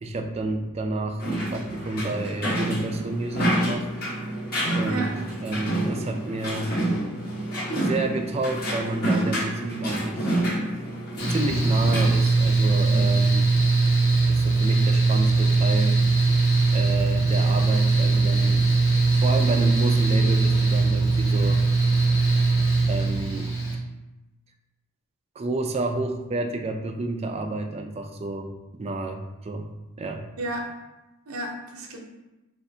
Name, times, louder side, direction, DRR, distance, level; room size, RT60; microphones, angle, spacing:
voice 1, 0.0-3.9 4.7-5.1 5.4-6.7 7.8-10.3 11.3-13.5 14.3-16.0 16.7-18.7 19.1-21.6 22.9-23.5 25.4-29.7 30.0-30.3, right 2 dB, 30° right, 4 dB, 0.3 m, -30 dB
sound 1, 1.2-12.1, right 1 dB, 45° left, 1.4 m, -28 dB
Mechanical fan, 11.2-23.7, right 3 dB, 60° left, 1.2 m, -20 dB
voice 2, 30.4-30.7 31.3-32.0, right 2 dB, 75° right, 1 dB, 0.6 m, -32 dB
5.1 x 2.5 x 2.7 m, 1.0 s
head